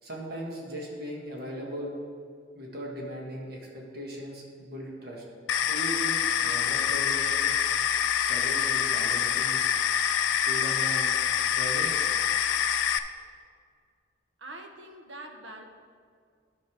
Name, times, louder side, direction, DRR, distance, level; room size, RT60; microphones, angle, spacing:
voice 1, 0.0-1.9 2.5-5.2 5.7-7.5 8.1-9.6 10.3-11.1 11.5-12.1, equal, 55° right, -2 dB, 1.6 m, -38 dB
sound 1, 5.5-13.0, left 9 dB, 90° left, 0.4 m, -26 dB
voice 2, 14.4-15.6, right 2 dB, 85° right, 4 dB, 1.0 m, -44 dB
10.5 x 5.5 x 4.8 m, 2.1 s
head